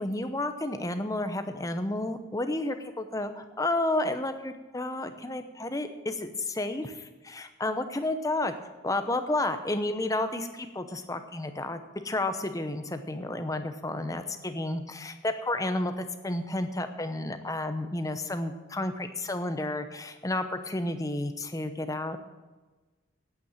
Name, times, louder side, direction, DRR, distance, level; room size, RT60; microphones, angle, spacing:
voice 1, 0.0-8.5 8.8-22.2, left 2 dB, 15° left, 8 dB, 0.8 m, -31 dB
9.3 x 8.6 x 9.0 m, 1.2 s
head